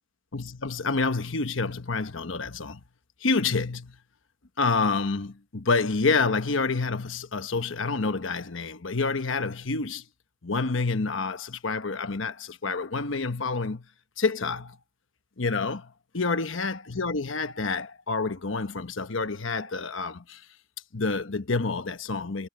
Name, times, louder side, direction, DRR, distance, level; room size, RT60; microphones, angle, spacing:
voice 1, 0.3-2.8 3.2-4.0 4.6-10.0 10.4-13.9 14.2-14.8 15.4-20.4 20.9-22.5, left 4 dB, 75° left, 1.1 m, -28 dB
head